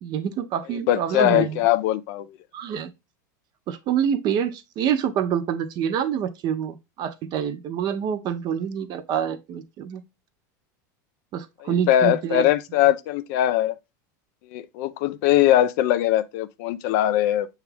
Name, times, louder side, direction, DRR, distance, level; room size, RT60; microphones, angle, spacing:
voice 1, 0.0-1.6 2.5-2.9 3.7-10.0 11.3-12.4, right 8 dB, 45° right, 0.5 m, -26 dB
voice 2, 0.7-2.4 11.6-13.7 14.5-17.5, left 13 dB, 60° left, 0.4 m, -21 dB
5.9 x 2.4 x 3.2 m
hypercardioid pair, 110°, 10 cm